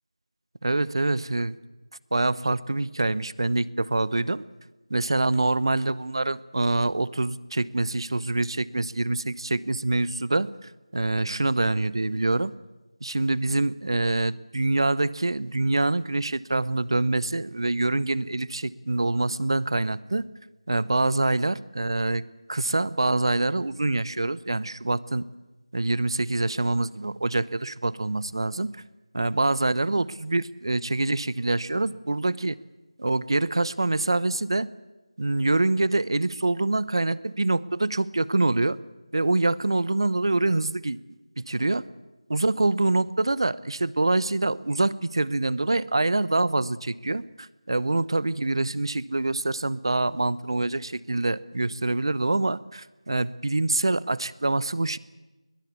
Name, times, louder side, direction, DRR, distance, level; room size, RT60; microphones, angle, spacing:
voice 1, 0.6-1.6 2.1-4.4 4.9-12.5 13.0-20.3 20.7-22.2 22.5-25.2 25.7-28.7 29.1-32.6 33.0-34.7 35.2-38.8 39.1-41.0 41.4-41.9 42.3-55.0, right 2 dB, 55° right, 20 dB, 0.8 m, -25 dB
21.0 x 20.5 x 8.3 m, 1.1 s
figure-of-eight pair, 170°, 3 cm